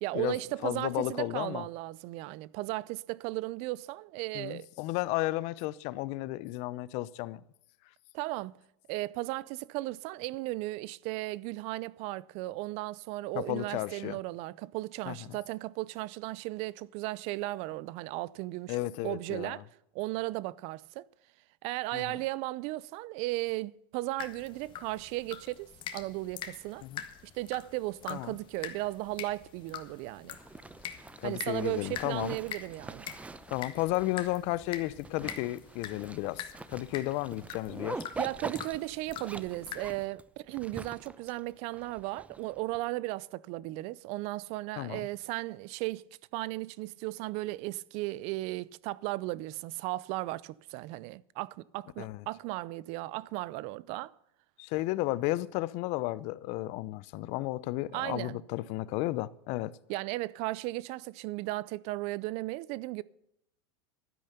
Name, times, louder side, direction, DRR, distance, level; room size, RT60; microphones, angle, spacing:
voice 1, 0.0-4.7 8.1-8.6 8.9-19.6 19.9-21.0 21.6-26.8 27.3-30.4 31.2-33.1 38.2-46.0 46.3-54.1 57.9-58.4 59.9-63.0, right 19 dB, 55° right, 0.6 m, -36 dB
voice 2, 0.6-1.7 4.3-7.4 13.3-14.2 15.1-15.2 18.7-19.6 21.9-22.2 26.8-27.0 28.1-28.4 31.2-32.4 33.5-38.0 44.8-45.0 52.0-52.2 54.6-59.8, left 18 dB, 55° left, 0.7 m, -33 dB
sound 1, 24.2-40.1, left 9 dB, 35° left, 1.6 m, -45 dB
Zipper (clothing), 30.3-42.8, right 3 dB, 10° right, 0.7 m, -45 dB
12.5 x 9.9 x 6.7 m
supercardioid pair, 125°, 14 cm